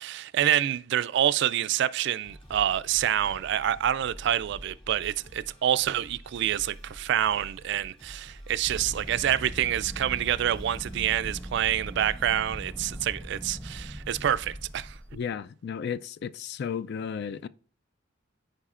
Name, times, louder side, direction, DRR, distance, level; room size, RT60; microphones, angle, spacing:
voice 1, 0.0-15.0, right 10 dB, 60° right, 0.3 m, -27 dB
sound 1, 2.2-12.7, equal, 30° left, 2.1 m, -48 dB
sound 2, 8.6-15.3, equal, 10° left, 0.9 m, -40 dB
voice 2, 15.1-17.5, left 7 dB, 55° left, 0.3 m, -34 dB
14.0 x 4.8 x 2.4 m
head